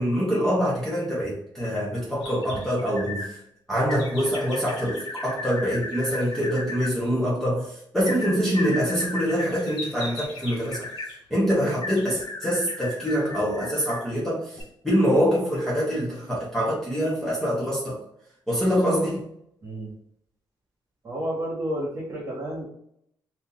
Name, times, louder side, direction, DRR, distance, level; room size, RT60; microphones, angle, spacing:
voice 1, 0.0-3.4 3.7-10.9 11.3-18.0 18.5-19.2, equal, 5° left, -7 dB, 0.9 m, -25 dB
sound 1, 2.2-3.3 3.9-6.9 8.0-11.1 11.8-14.1 14.5-14.6, left 2 dB, 80° left, 1.1 m, -36 dB
voice 2, 21.0-22.7, equal, 30° right, -4 dB, 1.3 m, -31 dB
2.7 x 2.6 x 3.8 m, 0.73 s
wide cardioid pair, 170°, 8 cm